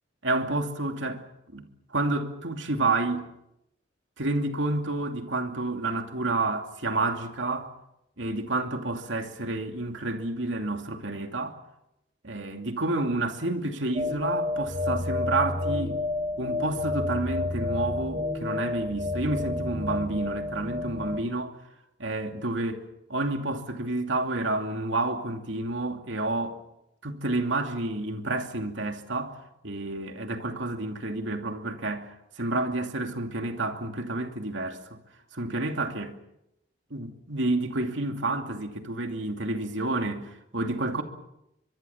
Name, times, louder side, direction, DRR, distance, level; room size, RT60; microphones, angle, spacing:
voice 1, 0.2-1.2 1.5-1.6 1.9-3.3 4.2-7.7 8.2-11.6 12.2-16.0 16.4-21.5 22.0-26.6 27.0-29.4 29.6-32.1 32.4-35.0 35.3-36.1 36.9-41.0, right 2 dB, 80° right, 2.7 m, -29 dB
sound 1, 13.9-21.2, left 2 dB, 25° right, 3.8 m, -30 dB
24.0 x 23.0 x 7.2 m
head